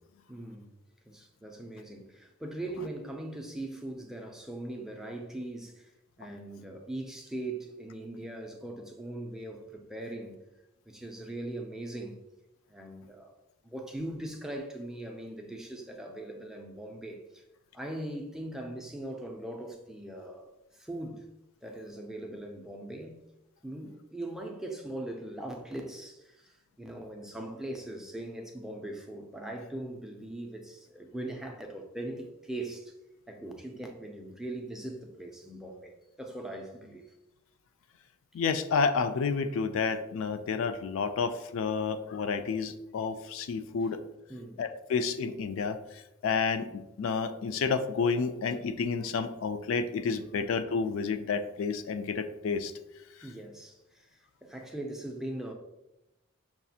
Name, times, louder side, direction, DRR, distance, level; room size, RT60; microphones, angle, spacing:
voice 1, 0.3-0.7 1.1-5.9 6.2-10.4 10.9-12.2 12.7-13.3 13.6-17.4 17.7-21.3 21.6-23.2 23.6-32.9 33.3-37.2 44.3-44.6 50.3-50.5 53.2-55.5, right 1 dB, ahead, 0.4 m, -40 dB
voice 2, 38.3-44.0 44.6-52.7, left 5 dB, 70° left, 0.3 m, -30 dB
5.9 x 2.4 x 2.7 m
head